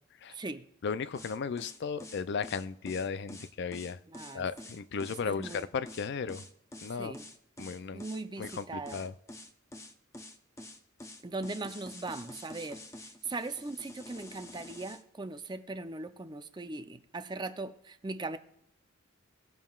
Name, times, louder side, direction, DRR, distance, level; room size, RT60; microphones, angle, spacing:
voice 1, 0.3-0.7 4.1-4.5 5.2-5.6 7.0-7.3 7.9-9.0 11.2-18.4, right 3 dB, 20° right, 0.5 m, -39 dB
voice 2, 0.8-4.0 4.3-6.4 6.8-7.1 7.6-8.0 8.4-9.1, left 5 dB, 60° left, 0.4 m, -35 dB
sound 1, 1.1-15.0, left 1 dB, 15° left, 0.8 m, -47 dB
17.5 x 7.4 x 2.4 m
head